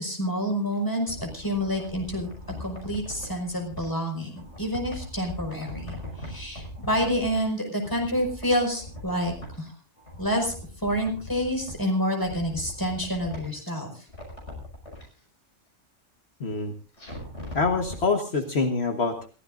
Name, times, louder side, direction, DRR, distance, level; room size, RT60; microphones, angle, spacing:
voice 1, 0.0-2.3 2.6-9.7 10.2-10.5 10.8-14.0, equal, 15° left, 2 dB, 5.1 m, -28 dB
sound 1, 0.7-3.9 4.4-7.6 7.8-9.7 10.0-11.9 12.2-13.7 14.1-15.0 17.0-18.0 18.3-18.4, left 1 dB, 80° left, 6.2 m, -40 dB
voice 2, 16.4-16.7 17.5-19.3, left 4 dB, 60° left, 5 dB, 1.6 m, -25 dB
28.5 x 15.5 x 2.6 m, 0.36 s
omnidirectional pair, 1.2 m